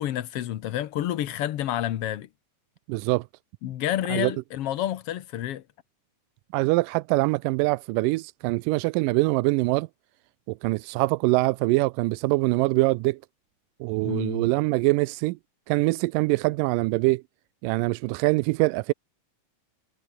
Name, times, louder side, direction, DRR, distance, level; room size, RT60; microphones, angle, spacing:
voice 1, 0.0-2.3 3.6-5.6 14.0-14.5, left 12 dB, 65° left, 1.5 m, -29 dB
voice 2, 2.9-3.3 4.1-4.3 6.5-9.9 10.5-13.2 13.8-15.4 15.7-17.2 17.6-18.9, right 22 dB, 90° right, 2.2 m, -24 dB
omnidirectional pair, 3.8 m